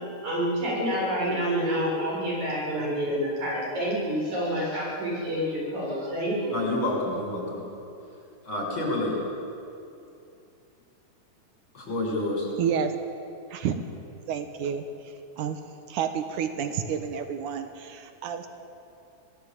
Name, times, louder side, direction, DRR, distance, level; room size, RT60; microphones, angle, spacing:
voice 1, 0.0-6.6, equal, 70° right, -4 dB, 8.4 m, -28 dB
voice 2, 6.5-7.7 8.5-9.2 11.7-12.5, left 1 dB, 40° left, -2 dB, 7.3 m, -28 dB
voice 3, 12.5-13.0 13.5-13.7 14.3-14.8 15.4-15.6 15.9-18.5, right 8 dB, 85° right, 7 dB, 2.7 m, -29 dB
27.0 x 18.0 x 8.8 m, 2.7 s
omnidirectional pair, 3.4 m